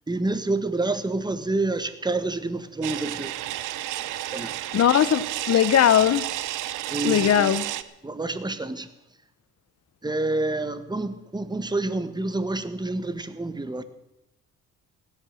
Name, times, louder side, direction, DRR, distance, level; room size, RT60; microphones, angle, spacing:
voice 1, 0.1-3.4 4.3-4.5 6.9-7.5 8.0-8.9 10.0-13.8, right 2 dB, 15° right, 12 dB, 1.4 m, -28 dB
sound 1, 2.8-7.8, right 14 dB, 90° right, 0.8 m, -31 dB
voice 2, 4.7-6.2 7.0-7.6, left 10 dB, 55° left, 15 dB, 1.0 m, -19 dB
16.5 x 12.0 x 6.5 m, 0.88 s
cardioid pair, 90°, 30 cm